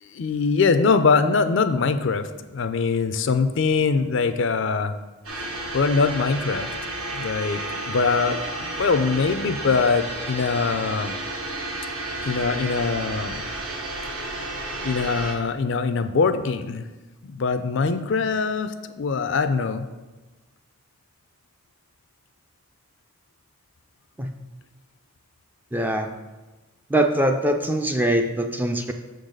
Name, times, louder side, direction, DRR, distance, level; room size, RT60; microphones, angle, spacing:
voice 1, 0.0-4.9 5.7-6.7 7.1-11.2 12.2-13.5 14.8-16.8 17.2-18.7 19.0-19.8, left 4 dB, 55° left, 10 dB, 0.4 m, -23 dB
sound 1, 5.2-15.3, right 2 dB, 80° right, 1.3 m, -32 dB
voice 2, 25.7-26.1 26.9-28.9, right 1 dB, 10° right, 5 dB, 0.3 m, -22 dB
6.7 x 3.9 x 6.5 m, 1.2 s
head